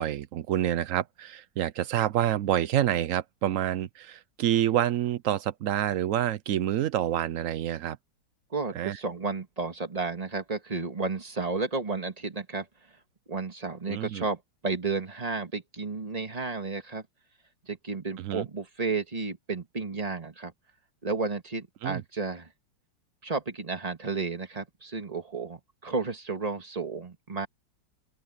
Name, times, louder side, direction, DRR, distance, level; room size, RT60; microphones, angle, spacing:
voice 1, 0.0-8.0 8.7-9.0 13.9-14.3 18.2-18.5 21.8-22.0, right 12 dB, 80° right, 0.7 m, -27 dB
voice 2, 8.5-12.7 13.3-17.0 17.7-20.5 21.0-22.5 23.2-27.5, right 4 dB, 20° right, 1.8 m, -32 dB
open air
omnidirectional pair, 2.1 m